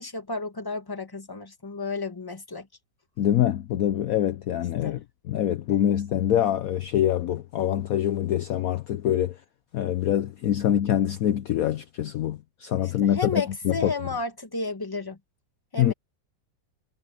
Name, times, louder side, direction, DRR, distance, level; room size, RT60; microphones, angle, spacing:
voice 1, 0.0-2.7 4.8-4.9 13.0-15.2 15.7-15.9, left 3 dB, 15° left, 1.4 m, -32 dB
voice 2, 3.2-9.4 9.7-13.9 15.8-15.9, left 11 dB, 65° left, 1.0 m, -25 dB
omnidirectional pair, 1.9 m